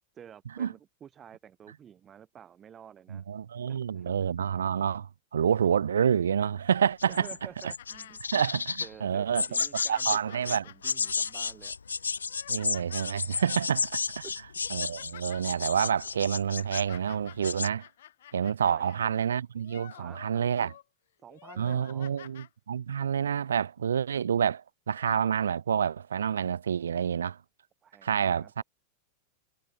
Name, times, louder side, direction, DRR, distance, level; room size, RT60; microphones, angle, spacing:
voice 1, 0.1-3.2 3.7-4.3 7.1-8.2 8.8-11.7 12.6-12.7 14.2-14.3 18.6-19.1 19.9-20.7 21.2-22.1 27.8-28.5, right 9 dB, 25° right, 5.8 m, -50 dB
voice 2, 3.1-7.3 8.3-9.5 9.9-10.6 12.5-14.2 14.7-17.9 18.3-20.7 21.6-27.4 28.0-28.6, right 8 dB, 65° right, 0.4 m, -28 dB
sound 1, 7.0-8.9 9.3-10.2 10.4-16.9 17.3-17.7, left 5 dB, 75° left, 2.3 m, -32 dB
sound 2, 7.8-8.2 8.7-8.8 9.2-13.2 13.9-14.1 14.5-15.4 16.2-19.0 19.5-20.8 21.3-22.5 23.4-23.5, left 12 dB, 60° left, 3.6 m, -50 dB
figure-of-eight pair, 90°, 0 cm